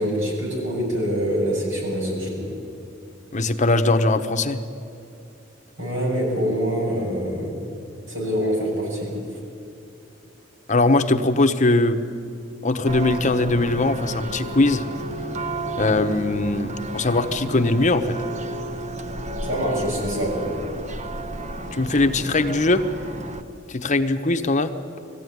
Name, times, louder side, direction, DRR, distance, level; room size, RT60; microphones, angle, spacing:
voice 1, 0.0-2.5 5.8-7.6 8.1-9.2 19.4-20.4, equal, 90° right, -2 dB, 6.9 m, -25 dB
voice 2, 3.3-4.6 10.7-12.0 12.6-14.8 15.8-18.2 21.7-22.8 23.7-24.7, left 2 dB, 40° left, 7 dB, 0.9 m, -20 dB
Church bell, 12.8-23.4, right 1 dB, 40° right, 0.9 m, -32 dB
20.0 x 15.0 x 9.5 m, 2.6 s
head